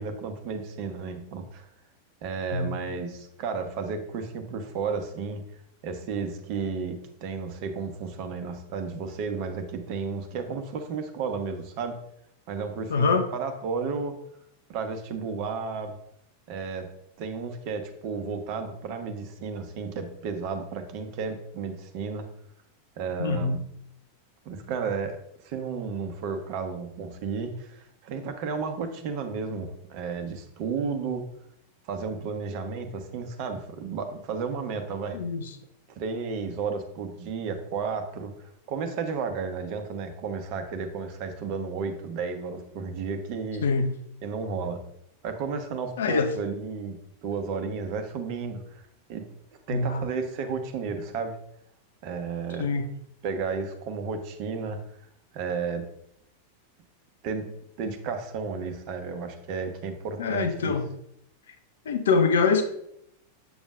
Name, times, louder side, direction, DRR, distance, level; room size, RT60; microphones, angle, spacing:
voice 1, 0.0-1.6 2.2-5.4 5.8-12.0 12.5-13.1 13.3-14.2 14.7-16.0 16.5-16.9 17.2-22.3 23.0-23.6 24.4-25.2 25.4-31.2 31.9-35.2 35.9-38.3 38.7-43.7 44.2-44.8 45.2-47.0 47.2-49.2 49.7-51.4 52.0-52.7 53.2-54.8 55.3-55.8 57.2-57.5 57.8-60.8, right 5 dB, 45° right, 1.0 m, -33 dB
voice 2, 12.9-13.3 23.2-23.6 35.1-35.5 43.6-43.9 46.0-46.3 49.7-50.1 52.6-52.9 60.2-60.9 61.9-62.6, left 4 dB, 60° left, 0.7 m, -24 dB
8.0 x 7.1 x 2.5 m
figure-of-eight pair, 90°, 0 cm